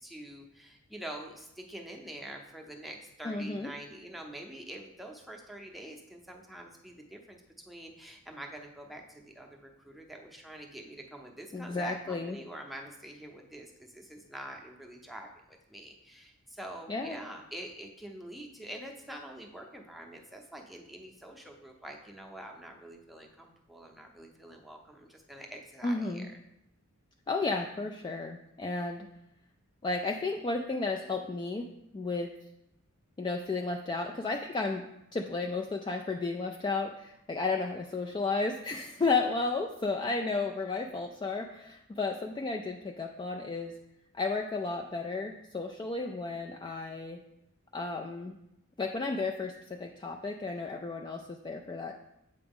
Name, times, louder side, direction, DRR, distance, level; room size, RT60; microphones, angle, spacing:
voice 1, 0.0-26.3, right 1 dB, ahead, 0 dB, 0.7 m, -46 dB
voice 2, 3.2-3.7 11.5-12.4 16.9-17.2 25.8-26.3 27.3-29.1 29.8-31.7 31.9-32.3 33.2-34.8 35.1-43.7 44.1-47.2 47.7-48.4 48.8-52.0, left 3 dB, 20° left, 2 dB, 0.3 m, -33 dB
7.8 x 4.8 x 3.6 m, 0.85 s
head